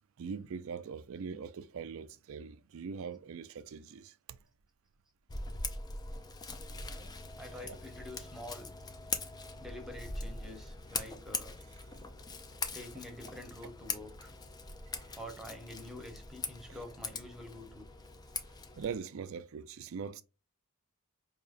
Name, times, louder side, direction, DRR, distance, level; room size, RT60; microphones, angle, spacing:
voice 1, 0.2-4.4 7.6-7.8 11.0-11.1 11.9-12.0 14.9-15.1 18.7-20.2, right 6 dB, 65° right, 0.4 m, -42 dB
Scissors, 5.3-19.0, left 4 dB, 20° left, 0.4 m, -42 dB
voice 2, 7.4-8.7 9.6-11.6 12.7-14.3 15.0-17.8, left 1 dB, ahead, 0.9 m, -47 dB
5.0 x 2.8 x 2.5 m
head